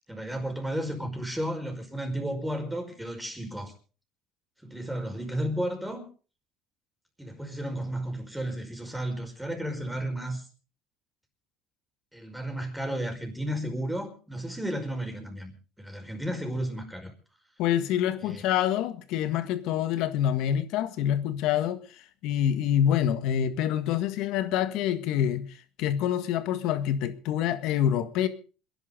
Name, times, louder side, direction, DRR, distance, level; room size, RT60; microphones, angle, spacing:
voice 1, 0.1-3.7 4.6-6.1 7.2-10.5 12.1-15.5 15.8-17.1 18.2-18.4, right 1 dB, 5° right, 5.2 m, -33 dB
voice 2, 17.6-28.3, left 10 dB, 70° left, 1.7 m, -26 dB
27.5 x 11.0 x 3.9 m
cardioid pair, 115°, 0 cm